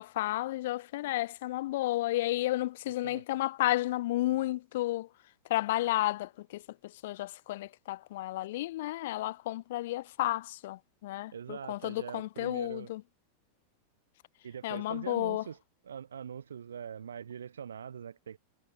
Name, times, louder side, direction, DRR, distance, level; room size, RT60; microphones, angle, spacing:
voice 1, 0.0-5.1 5.5-6.6 7.0-13.0 14.6-15.4, left 16 dB, 55° left, 0.3 m, -32 dB
voice 2, 11.3-12.9 14.4-15.6 15.8-18.4, right 8 dB, 70° right, 2.6 m, -42 dB
figure-of-eight pair, 90°, 0 cm